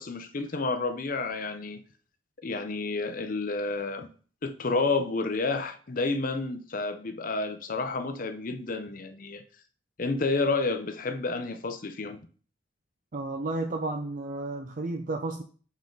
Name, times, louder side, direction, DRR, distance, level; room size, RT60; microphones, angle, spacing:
voice 1, 0.0-1.8 2.4-4.1 4.4-9.4 10.0-12.2, left 3 dB, 50° left, 0.7 m, -30 dB
voice 2, 13.1-15.4, right 2 dB, 45° right, 0.5 m, -32 dB
7.1 x 3.7 x 3.9 m
head